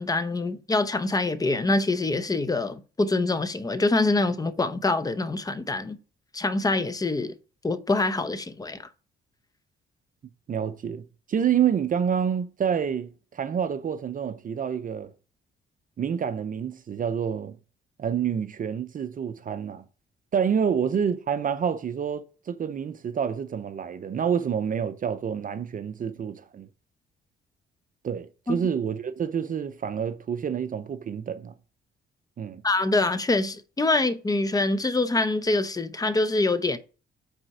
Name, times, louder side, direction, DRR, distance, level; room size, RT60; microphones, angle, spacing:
voice 1, 0.0-6.0 6.3-7.3 7.6-8.8 28.5-28.6 32.6-36.8, left 2 dB, 20° left, 0.7 m, -25 dB
voice 2, 10.5-15.1 16.0-17.6 18.0-19.8 20.3-26.7 28.0-31.5 32.4-32.6, right 7 dB, 45° right, 0.6 m, -28 dB
5.4 x 4.2 x 4.8 m
cardioid pair, 90°, 20 cm